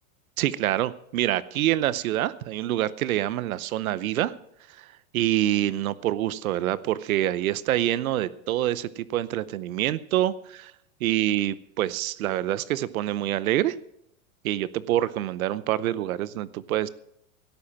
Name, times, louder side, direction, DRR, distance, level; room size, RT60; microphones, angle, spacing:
voice 1, 0.4-4.3 4.7-4.9 5.1-10.7 11.0-13.8 14.4-16.9, right 13 dB, 75° right, 17 dB, 0.8 m, -26 dB
17.0 x 8.7 x 5.9 m, 0.76 s
supercardioid pair, 175°, 42 cm